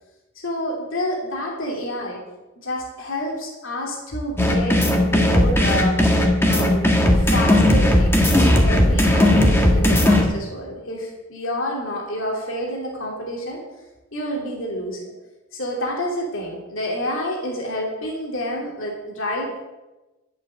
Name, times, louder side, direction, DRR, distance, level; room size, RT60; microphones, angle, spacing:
voice 1, 0.3-2.2 2.6-6.0 6.5-13.6 14.1-15.0 15.5-19.6, left 1 dB, 65° left, -1 dB, 3.1 m, -28 dB
sound 1, 4.4-10.2, left 1 dB, 10° left, 1.6 m, -16 dB
12.0 x 8.2 x 7.6 m, 1.1 s
head